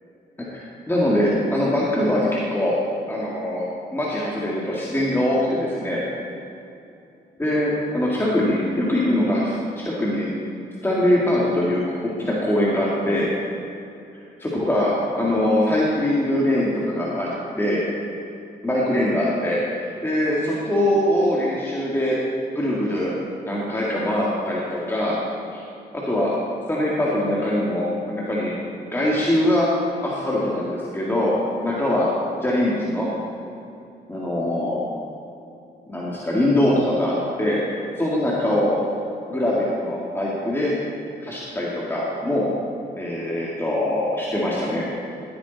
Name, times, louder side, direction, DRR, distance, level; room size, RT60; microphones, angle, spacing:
voice 1, 0.5-2.7 3.1-6.0 7.4-10.3 10.8-13.3 14.4-17.3 17.6-17.8 18.6-22.2 22.5-23.1 23.5-25.1 25.5-25.6 25.9-26.3 26.7-28.5 28.9-29.7 30.0-32.1 32.4-33.1 34.1-34.8 35.9-38.8 39.3-40.7 41.2-42.5 43.0-44.8, left 1 dB, 10° left, -6 dB, 2.2 m, -22 dB
16.5 x 8.7 x 4.1 m, 2.7 s
cardioid pair, 80°, 18 cm